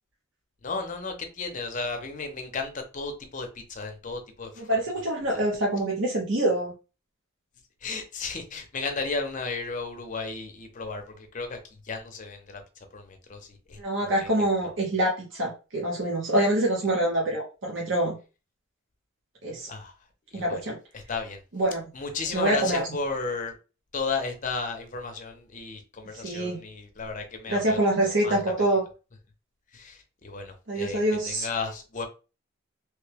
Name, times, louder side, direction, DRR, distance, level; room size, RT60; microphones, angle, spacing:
voice 1, 0.6-4.6 7.8-11.6 11.8-12.6 12.9-14.3 19.7-19.9 20.3-20.6 20.9-21.4 21.9-23.6 23.9-27.8 28.2-28.4 29.7-32.1, left 4 dB, 40° left, 0.7 m, -34 dB
voice 2, 4.6-6.7 13.8-18.2 19.4-19.7 20.3-20.8 21.5-21.8 22.3-22.8 26.1-26.6 27.5-28.8 30.7-31.5, right 1 dB, 65° right, 0.8 m, -25 dB
3.1 x 2.2 x 3.3 m
head